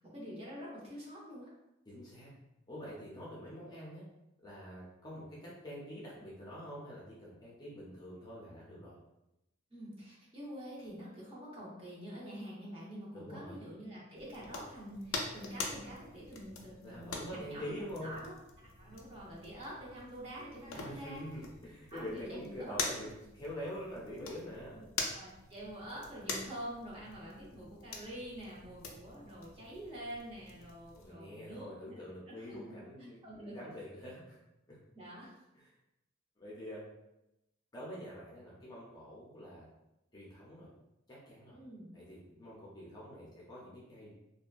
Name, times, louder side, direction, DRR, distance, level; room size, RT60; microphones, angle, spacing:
voice 1, 0.0-1.5 9.7-21.2 21.9-22.8 24.7-24.8 25.1-31.7 32.3-32.6 33.2-33.6 34.9-35.3 41.5-41.9, equal, 30° right, -6 dB, 0.7 m, -46 dB
voice 2, 1.9-2.3 2.7-4.0 4.4-9.0 13.1-13.6 16.8-18.2 20.7-24.8 30.9-34.4 34.7-34.8 35.5-35.7 36.4-36.8 37.7-39.7 40.1-40.7 41.1-41.6 41.9-44.1, equal, 20° left, -6 dB, 0.6 m, -46 dB
sound 1, 14.2-31.1, left 4 dB, 90° left, 0.4 m, -45 dB
2.8 x 2.2 x 2.4 m, 0.90 s
head